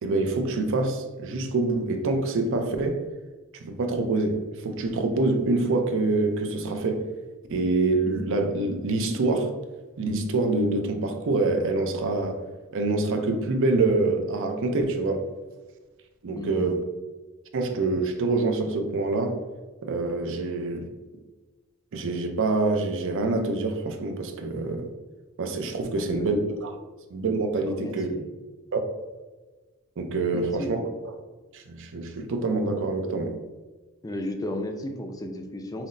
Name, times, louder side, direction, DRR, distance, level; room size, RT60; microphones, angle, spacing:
voice 1, 0.0-3.0 3.5-7.0 7.5-9.5 10.0-12.4 12.7-15.2 16.2-16.8 17.5-19.4 19.8-20.9 21.9-24.9 25.4-26.7 27.1-28.1 28.7-28.8 30.0-30.8 31.5-33.4, right 3 dB, 60° right, 5 dB, 0.5 m, -26 dB
voice 2, 16.4-16.7 25.9-26.4 27.6-28.3 30.3-30.9 34.0-35.9, left 1 dB, 15° left, 4 dB, 0.4 m, -34 dB
5.7 x 2.0 x 2.6 m, 1.3 s
head